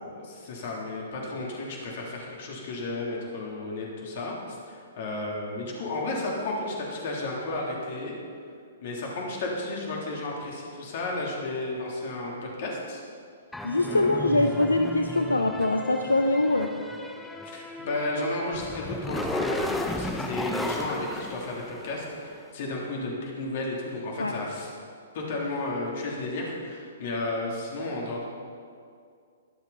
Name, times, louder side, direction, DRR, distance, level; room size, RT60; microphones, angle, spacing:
voice 1, 0.0-8.1 8.8-13.0 13.8-14.4 17.4-24.7 25.1-28.2, left 2 dB, 50° left, -2 dB, 3.4 m, -33 dB
sound 1, 13.5-22.2, left 1 dB, 5° left, 0.8 m, -34 dB
voice 2, 13.6-16.7 24.2-24.3, left 2 dB, 90° left, 6 dB, 0.6 m, -23 dB
22.5 x 7.5 x 4.2 m, 2.3 s
figure-of-eight pair, 120°, 0 cm